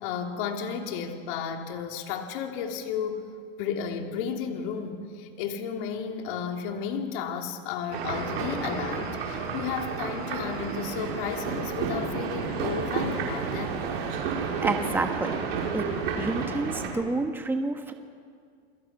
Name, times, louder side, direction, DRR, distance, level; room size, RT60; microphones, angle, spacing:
voice 1, 0.0-3.2 3.6-13.8, left 7 dB, 55° left, 4 dB, 3.2 m, -33 dB
sound 1, 7.9-16.9, right 5 dB, 70° right, 5.5 m, -31 dB
voice 2, 14.6-15.4 15.7-15.9 16.2-17.9, right 3 dB, 5° right, 5 dB, 1.4 m, -29 dB
29.5 x 22.0 x 6.1 m, 2.2 s
supercardioid pair, 135°, 31 cm